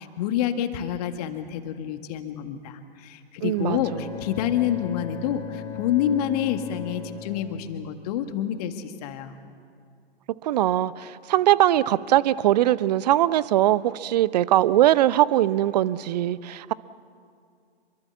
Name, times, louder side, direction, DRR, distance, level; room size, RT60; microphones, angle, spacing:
voice 1, 0.0-9.3, left 10 dB, 35° left, 8 dB, 1.9 m, -28 dB
voice 2, 3.4-4.0 10.4-16.7, right 13 dB, 40° right, 18 dB, 0.8 m, -21 dB
Bowed string instrument, 3.6-8.6, left 8 dB, 15° left, 3.9 m, -38 dB
26.5 x 23.5 x 7.3 m, 2.3 s
figure-of-eight pair, 115°, 32 cm